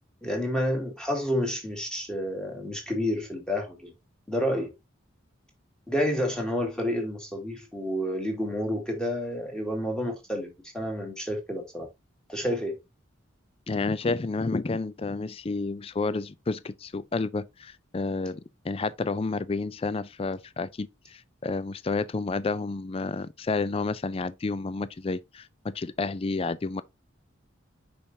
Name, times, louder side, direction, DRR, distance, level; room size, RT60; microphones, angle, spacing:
voice 1, 0.2-3.9 4.3-4.7 5.9-11.9 12.3-12.8, equal, 5° left, 2.3 m, -29 dB
voice 2, 13.7-26.8, left 3 dB, 30° left, 0.4 m, -30 dB
6.9 x 5.7 x 2.8 m
head